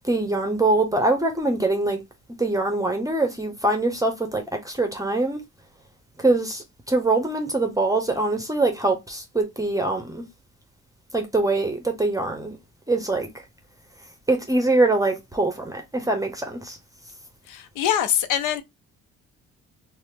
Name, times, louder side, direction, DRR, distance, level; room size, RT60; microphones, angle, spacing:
voice 1, 0.0-2.0 2.4-5.4 6.2-10.2 11.1-12.6 12.9-13.3 14.3-16.8, right 2 dB, 10° right, 0.7 m, -23 dB
voice 2, 17.5-18.6, left 10 dB, 90° left, 0.6 m, -23 dB
2.8 x 2.1 x 3.3 m
cardioid pair, 90°, 30 cm